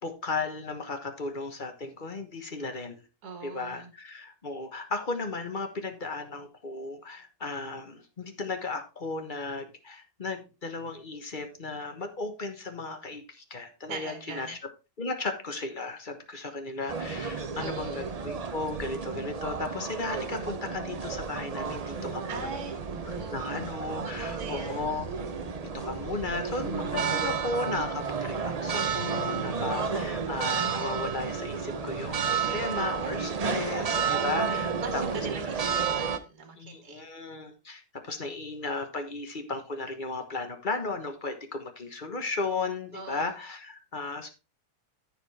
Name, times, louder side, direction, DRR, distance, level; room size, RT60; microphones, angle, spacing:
voice 1, 0.0-3.0 3.4-14.6 15.0-22.6 23.3-25.0 25.7-35.0 35.4-35.5 36.6-44.3, left 3 dB, 35° left, 6 dB, 1.3 m, -35 dB
voice 2, 3.2-3.9 13.9-14.6 17.6-18.0 22.2-22.8 23.1-23.7 24.0-24.8 34.8-37.0 42.9-43.3, right 4 dB, 75° right, 6 dB, 1.9 m, -41 dB
sound 1, 16.9-36.2, right 5 dB, 50° right, 0.4 m, -32 dB
14.0 x 4.8 x 3.4 m, 0.30 s
omnidirectional pair, 1.7 m